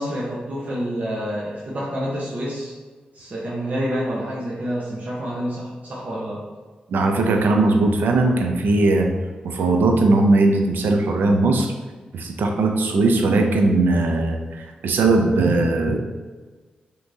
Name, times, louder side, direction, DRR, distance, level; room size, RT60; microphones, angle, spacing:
voice 1, 0.0-2.7 3.1-6.4, equal, 50° right, -5 dB, 1.0 m, -28 dB
voice 2, 6.9-9.1 9.4-11.7 12.1-16.0, right 2 dB, 80° right, 3 dB, 0.6 m, -19 dB
6.1 x 3.0 x 2.7 m, 1.4 s
supercardioid pair, 45°, 3 cm